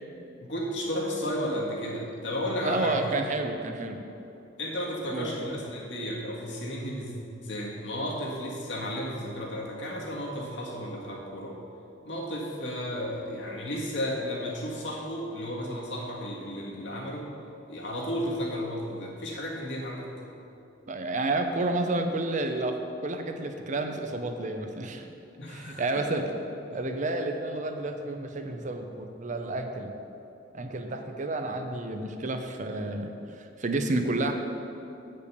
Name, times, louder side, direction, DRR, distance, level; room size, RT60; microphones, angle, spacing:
voice 1, 0.4-3.0 4.6-7.1 7.4-11.6 12.0-17.3 17.7-20.1 25.4-26.2 26.7-26.8 28.5-28.6, equal, 75° left, -3 dB, 1.7 m, -33 dB
voice 2, 2.6-4.0 5.1-5.3 20.9-22.7 23.0-25.1 25.5-26.2 26.7-29.9 30.5-34.3, right 2 dB, 40° right, 5 dB, 0.7 m, -30 dB
8.4 x 5.4 x 6.7 m, 2.8 s
head